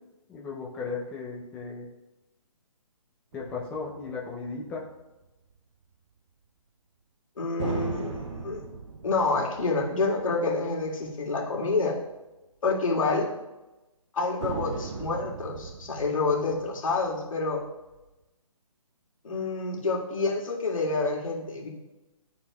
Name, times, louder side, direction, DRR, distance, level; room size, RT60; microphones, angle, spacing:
voice 1, 0.3-1.9 3.3-4.8, left 4 dB, 5° left, -4 dB, 0.5 m, -36 dB
sound 1, 3.3-5.2 7.6-11.3 11.7-11.8 14.4-18.1, right 4 dB, 55° right, 0.6 m, -39 dB
voice 2, 7.4-8.6 9.0-12.0 12.6-13.3 14.1-17.6 19.2-21.7, left 3 dB, 65° left, -2 dB, 1.8 m, -28 dB
11.5 x 4.0 x 2.3 m, 1.0 s
hypercardioid pair, 150°, 18 cm